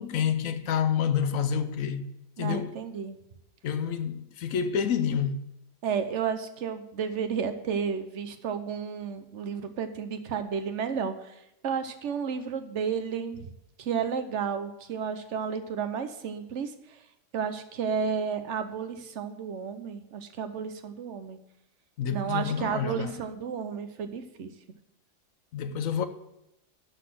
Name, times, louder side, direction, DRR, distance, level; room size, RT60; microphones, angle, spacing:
voice 1, 0.0-2.1 2.4-2.8 3.6-5.4 22.0-23.2 25.5-26.0, left 7 dB, 60° left, 1.0 m, -28 dB
voice 2, 2.4-3.2 5.8-11.3 11.6-13.5 13.8-17.0 17.3-21.4 22.1-24.5, right 6 dB, 55° right, 1.0 m, -32 dB
12.0 x 4.1 x 7.5 m
omnidirectional pair, 1.8 m